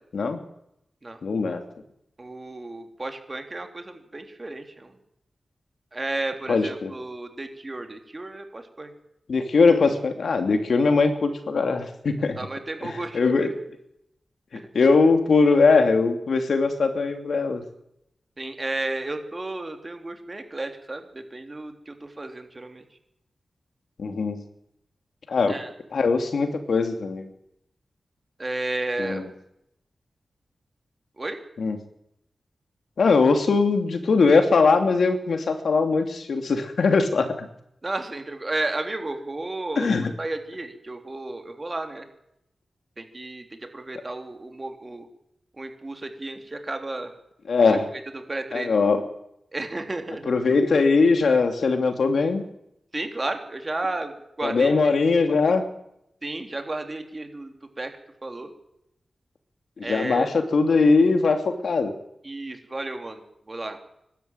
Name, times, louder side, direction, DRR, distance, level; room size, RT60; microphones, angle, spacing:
voice 1, 1.2-1.6 6.5-6.9 9.3-12.4 12.8-13.5 14.7-17.6 24.0-24.4 25.3-25.6 25.9-27.3 29.0-29.2 31.6-31.8 33.0-37.5 39.8-40.1 47.5-47.9 48.5-49.0 50.3-52.5 54.4-55.6 59.8-61.9, left 4 dB, 80° left, 6 dB, 2.8 m, -21 dB
voice 2, 2.2-4.9 5.9-8.9 12.2-13.3 14.5-14.7 18.4-22.8 25.5-25.7 28.4-29.2 31.2-31.4 37.8-42.0 43.0-45.1 45.5-47.1 47.6-47.8 48.1-48.7 49.5-50.3 52.9-54.7 56.2-57.9 58.2-58.5 59.8-60.3 62.2-63.2 63.5-63.8, right 2 dB, 35° right, 5 dB, 3.2 m, -33 dB
22.5 x 12.5 x 9.0 m, 0.79 s
wide cardioid pair, 70°, 0 cm